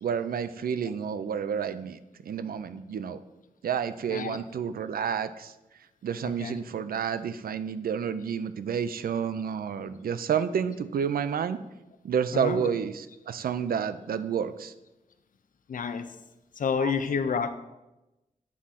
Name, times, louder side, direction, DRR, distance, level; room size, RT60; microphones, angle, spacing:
voice 1, 0.0-3.2 3.6-5.5 6.0-11.6 12.0-14.7 16.8-17.0, right 7 dB, 85° right, 12 dB, 0.5 m, -30 dB
voice 2, 15.7-16.1 16.6-17.5, left 6 dB, 65° left, 8 dB, 0.6 m, -29 dB
8.4 x 3.7 x 5.7 m, 0.99 s
wide cardioid pair, 135°, 15 cm